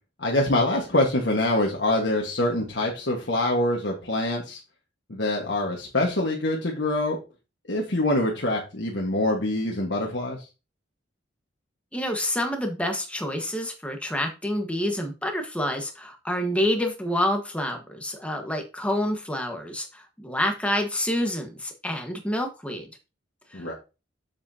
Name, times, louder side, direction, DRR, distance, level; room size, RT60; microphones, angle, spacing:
voice 1, 0.2-4.6 5.1-7.2 7.7-10.5 23.5-23.7, left 1 dB, 65° left, -1 dB, 1.5 m, -25 dB
voice 2, 11.9-22.9 23.5-23.7, left 1 dB, 5° left, 3 dB, 1.3 m, -28 dB
7.5 x 7.4 x 2.8 m, 0.29 s
head